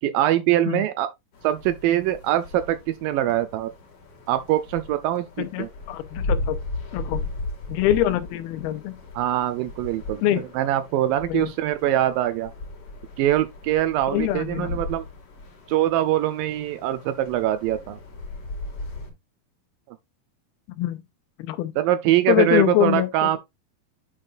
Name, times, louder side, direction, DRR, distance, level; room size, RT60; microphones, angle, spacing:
voice 1, 0.0-1.1 1.4-3.7 4.3-5.7 9.2-10.2 10.5-12.5 13.2-15.1 15.7-18.0 21.8-23.4, right 13 dB, 80° right, 2.1 m, -23 dB
sound 1, 1.3-19.1, left 2 dB, 45° left, 2.6 m, -36 dB
voice 2, 5.4-6.6 6.9-7.2 7.7-9.0 10.2-10.4 11.3-11.5 14.1-14.8 20.8-21.0 21.4-21.8 22.3-23.1, left 12 dB, 85° left, 2.6 m, -24 dB
8.7 x 5.5 x 2.4 m
omnidirectional pair, 4.4 m